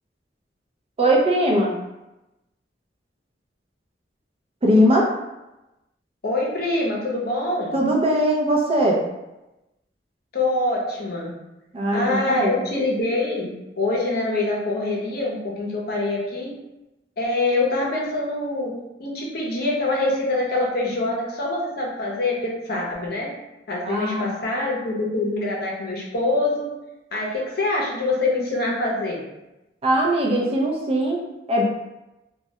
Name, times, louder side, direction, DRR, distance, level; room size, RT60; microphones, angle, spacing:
voice 1, 1.0-1.7 4.6-5.1 7.7-9.0 11.7-12.6 23.8-24.3 29.8-31.6, equal, 35° right, -1 dB, 0.4 m, -20 dB
voice 2, 6.2-7.8 10.3-11.3 11.9-16.5 17.2-18.7 19.0-23.3 23.7-26.7 27.1-29.2, left 2 dB, 60° left, -3 dB, 0.6 m, -24 dB
2.2 x 2.1 x 2.8 m, 0.99 s
head